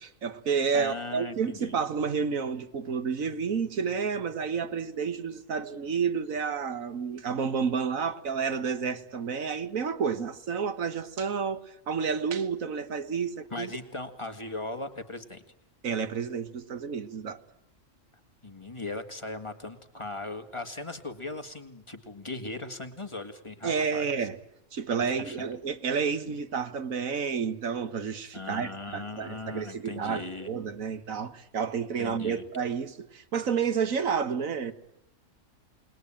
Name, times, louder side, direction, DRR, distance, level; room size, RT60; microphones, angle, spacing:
voice 1, 0.2-13.7 15.8-17.4 23.6-24.4 24.7-34.7, right 6 dB, 80° right, 1.7 m, -30 dB
voice 2, 0.7-1.8 13.5-15.4 18.4-24.3 24.9-25.4 28.3-30.5 32.0-32.4, left 2 dB, 20° left, 2.0 m, -38 dB
29.0 x 20.5 x 8.9 m
omnidirectional pair, 1.4 m